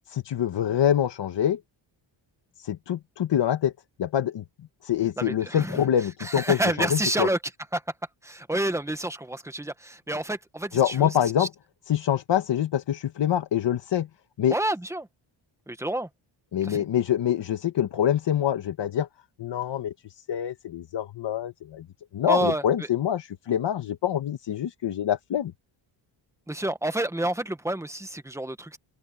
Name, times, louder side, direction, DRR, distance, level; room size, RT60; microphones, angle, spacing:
voice 1, 0.1-1.6 2.6-3.7 4.0-7.3 10.7-11.5 11.9-14.1 14.4-14.6 16.5-19.1 19.4-21.9 22.1-25.5, left 10 dB, 60° left, 1.4 m, -25 dB
voice 2, 5.2-5.8 6.2-7.4 7.7-7.8 8.2-11.1 11.4-11.5 14.5-15.1 15.7-16.1 16.7-16.8 22.3-22.6 26.5-28.8, right 1 dB, 5° right, 1.5 m, -28 dB
open air
cardioid pair, 115°, 47 cm